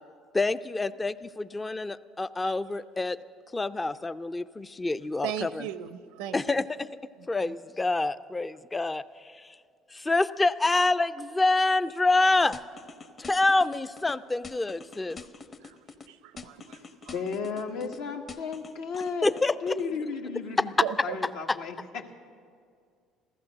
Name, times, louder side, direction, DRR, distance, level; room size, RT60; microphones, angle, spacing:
voice 1, 0.3-3.2 3.5-5.7 6.3-6.9 7.3-9.6 9.9-12.6 13.2-15.2 19.2-19.7, left 2 dB, 20° left, 13 dB, 0.4 m, -27 dB
voice 2, 5.2-6.6 7.4-7.5 15.6-17.1 20.8-21.2, right 10 dB, 85° right, 13 dB, 0.7 m, -37 dB
sound 1, 12.5-14.1 14.4-16.1 16.4-18.0 18.3-19.9, left 4 dB, 35° left, 0.9 m, -45 dB
voice 3, 17.1-19.3 19.6-20.7 21.0-22.1, left 5 dB, 80° left, 3 dB, 1.4 m, -34 dB
14.5 x 14.0 x 6.4 m, 2.2 s
supercardioid pair, 85°, 0 cm